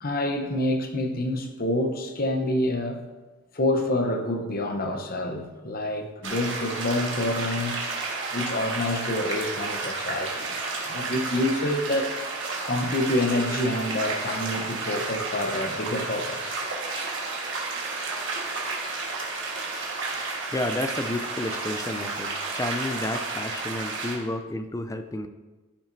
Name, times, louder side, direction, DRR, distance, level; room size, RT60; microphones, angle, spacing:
voice 1, 0.0-3.1 3.5-7.8 8.3-10.6 10.9-12.2 12.7-16.6, left 1 dB, 40° left, 5 dB, 0.8 m, -27 dB
sound 1, 6.2-24.2, right 3 dB, 55° right, 1.5 m, -32 dB
voice 2, 20.2-25.3, left 1 dB, 15° left, 8 dB, 0.4 m, -31 dB
13.0 x 5.9 x 2.7 m, 1.2 s
head